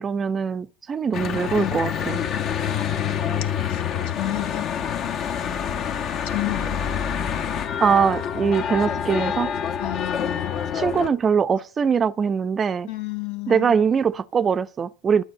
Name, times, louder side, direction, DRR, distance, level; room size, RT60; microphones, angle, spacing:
voice 1, 0.0-2.2 7.8-9.5 10.7-12.9 13.5-15.2, right 6 dB, 25° right, 0.7 m, -22 dB
Church bell / Traffic noise roadway noise, 1.1-11.1, left 8 dB, 40° left, 1.3 m, -27 dB
voice 2, 3.7-4.7 6.2-6.8 9.8-10.5 12.9-13.8, left 16 dB, 65° left, 1.9 m, -31 dB
12.0 x 7.8 x 6.6 m
supercardioid pair, 115°, 0 cm